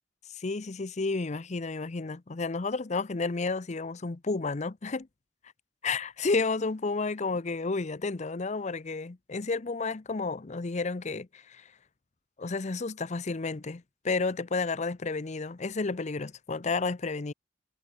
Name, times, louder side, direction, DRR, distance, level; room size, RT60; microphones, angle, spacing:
voice 1, 0.4-5.1 5.8-11.6 12.4-17.3, left 3 dB, 40° left, 0.7 m, -31 dB
head